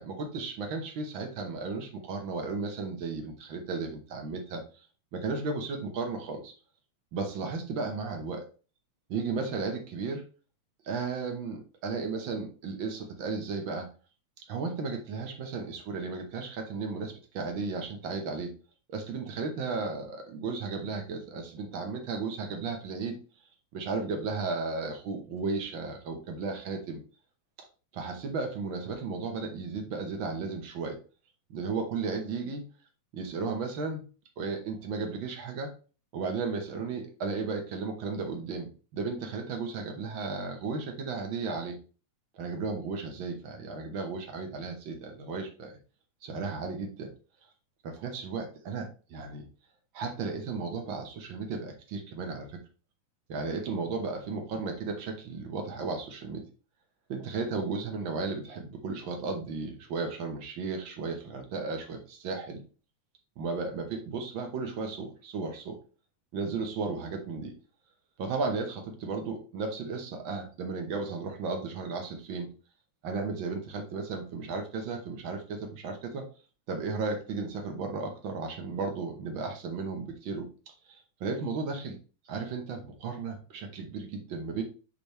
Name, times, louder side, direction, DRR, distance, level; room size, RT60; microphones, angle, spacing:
voice 1, 0.0-4.6 5.1-6.5 7.1-8.5 9.1-10.2 10.8-13.9 14.5-18.5 18.9-23.2 23.7-27.0 27.9-31.0 31.5-32.7 33.1-34.1 34.4-35.7 36.1-41.8 42.3-45.8 46.2-47.1 47.8-49.5 49.9-52.6 53.3-56.4 57.1-62.6 63.4-65.8 66.3-67.5 68.2-72.5 73.0-76.3 76.7-80.5 80.9-82.0 82.3-84.6, right 4 dB, 60° right, 3 dB, 1.2 m, -34 dB
9.1 x 3.4 x 3.4 m, 0.35 s
omnidirectional pair, 3.8 m